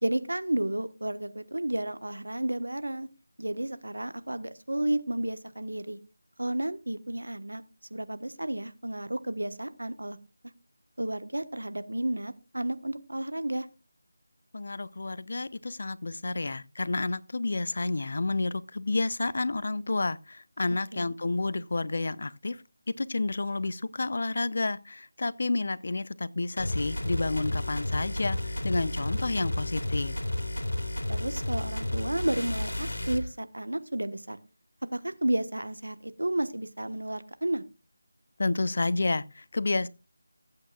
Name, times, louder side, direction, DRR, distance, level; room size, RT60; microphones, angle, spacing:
voice 1, 0.0-3.1 3.4-6.0 6.4-7.6 7.9-10.2 11.0-13.7 20.9-21.1 31.1-34.4 34.9-37.6, right 1 dB, 80° right, 1.2 m, -32 dB
voice 2, 14.5-22.6 23.0-28.4 28.6-30.2 38.4-39.9, left 3 dB, 55° left, 0.7 m, -30 dB
sound 1, 26.6-33.3, left 1 dB, 80° left, 2.6 m, -32 dB
19.0 x 8.7 x 2.4 m
figure-of-eight pair, 165°, 0 cm